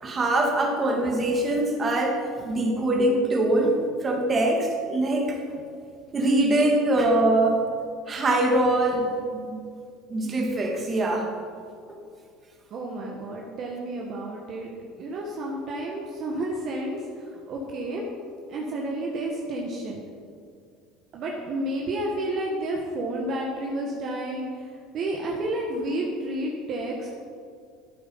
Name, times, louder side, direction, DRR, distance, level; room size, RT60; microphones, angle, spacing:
voice 1, 0.0-5.4 6.1-7.6 8.1-9.6 10.1-11.3 11.9-12.0, right 1 dB, 30° right, 1 dB, 2.4 m, -23 dB
voice 2, 12.7-14.7 15.0-18.0 18.5-20.0 21.1-27.1, right 1 dB, 50° right, -1 dB, 1.7 m, -31 dB
12.0 x 8.8 x 5.7 m, 2.2 s
supercardioid pair, 95°, 0 cm